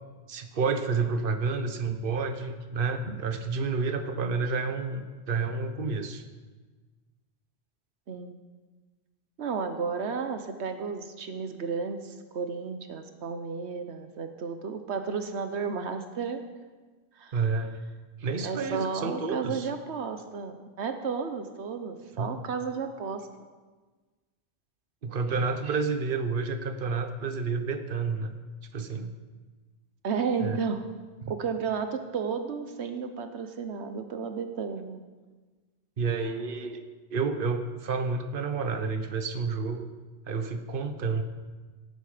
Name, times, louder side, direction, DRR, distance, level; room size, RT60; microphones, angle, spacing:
voice 1, 0.3-6.2 17.3-17.8 18.2-19.7 22.2-22.4 25.0-28.4 28.7-29.1 30.4-30.6 31.2-31.3 36.0-36.8 37.1-39.9 40.3-41.2, right 4 dB, 55° right, 7 dB, 1.2 m, -30 dB
voice 2, 9.4-16.4 17.2-17.4 18.4-23.3 30.0-30.8 31.3-35.0, right 5 dB, 80° right, 7 dB, 1.2 m, -33 dB
17.5 x 9.3 x 5.0 m, 1.3 s
omnidirectional pair, 1.1 m